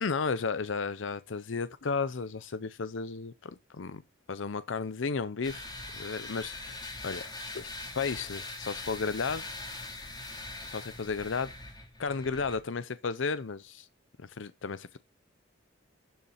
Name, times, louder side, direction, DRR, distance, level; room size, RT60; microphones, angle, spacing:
voice 1, 0.0-4.0 4.3-6.8 7.0-7.3 7.5-9.4 10.7-11.5 12.0-13.9 14.2-15.0, left 4 dB, 75° left, 0.6 m, -33 dB
sound 1, 5.4-12.6, left 2 dB, 20° left, 3.3 m, -42 dB
12.0 x 7.1 x 4.2 m
head